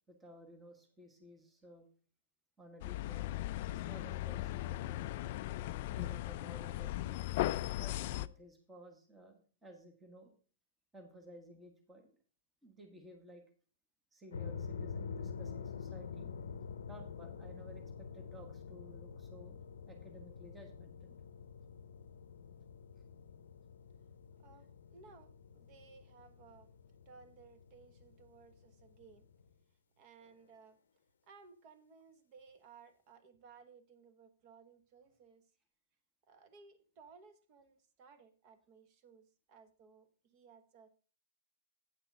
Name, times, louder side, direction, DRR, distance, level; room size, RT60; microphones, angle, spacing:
voice 1, 0.1-1.9 2.6-5.2 5.9-7.2 7.8-10.3 10.9-12.2 12.6-13.4 14.1-16.3 16.9-19.6 19.9-21.2, equal, 10° right, 4 dB, 1.3 m, -56 dB
sound 1, 2.8-8.3, left 15 dB, 45° left, 0.3 m, -38 dB
sound 2, 14.3-29.5, left 6 dB, 85° left, 0.7 m, -47 dB
voice 2, 24.4-29.3 30.0-30.8 31.3-35.5 36.3-40.9, right 5 dB, 35° right, 9 dB, 1.2 m, -60 dB
9.3 x 5.9 x 4.9 m, 0.40 s
hypercardioid pair, 155°, 0 cm